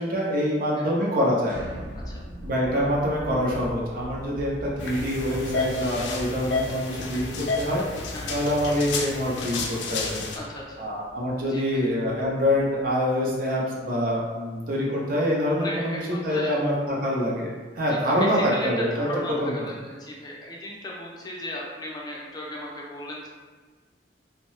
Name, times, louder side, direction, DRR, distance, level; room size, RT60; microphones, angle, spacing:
voice 1, 0.0-1.6 2.4-7.8 8.3-10.2 10.8-19.1 19.4-19.5, equal, 50° right, -4 dB, 0.6 m, -25 dB
sound 1, 1.4-13.3, equal, 80° right, 0.8 m, -42 dB
sound 2, 4.8-10.4, left 3 dB, 85° left, 0.4 m, -31 dB
voice 2, 10.3-10.9 11.3-11.8 15.6-16.6 17.8-23.3, left 1 dB, 20° left, -3 dB, 0.5 m, -36 dB
2.7 x 2.1 x 3.1 m, 1.4 s
head